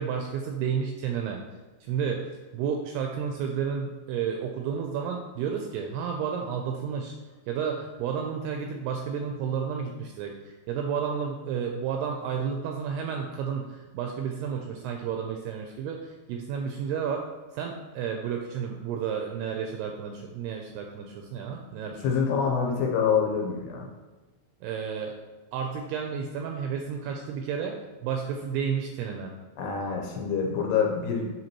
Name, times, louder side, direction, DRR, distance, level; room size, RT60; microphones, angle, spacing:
voice 1, 0.0-1.4 1.8-2.2 2.5-7.2 7.5-17.2 17.5-22.0 24.6-25.1 25.5-27.8 28.0-29.3, right 7 dB, 85° right, 2 dB, 2.3 m, -31 dB
voice 2, 22.0-23.9 29.6-31.3, left 6 dB, 80° left, 0 dB, 2.6 m, -26 dB
8.0 x 5.6 x 3.0 m, 1.2 s
omnidirectional pair, 5.1 m